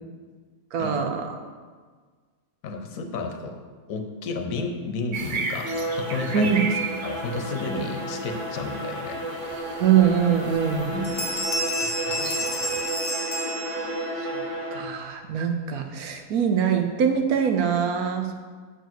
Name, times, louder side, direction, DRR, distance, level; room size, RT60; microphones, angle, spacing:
voice 1, 0.7-1.2 6.3-6.6 9.8-11.0 12.1-12.3 12.7-12.8 14.7-18.3, right 7 dB, 90° right, 5 dB, 1.3 m, -23 dB
voice 2, 2.6-3.6 3.9-6.6 7.0-9.2 10.9-11.2 11.8-12.2, left 3 dB, 70° left, 5 dB, 1.1 m, -32 dB
sound 1, 5.1-12.8, right 5 dB, 70° right, 0.4 m, -36 dB
Bowed string instrument, 5.5-15.0, right 1 dB, 55° right, 1.8 m, -32 dB
sound 2, 10.0-10.1 10.5-10.8 11.0-14.2, equal, 35° left, 0.6 m, -30 dB
6.8 x 4.6 x 6.1 m, 1.5 s
omnidirectional pair, 1.5 m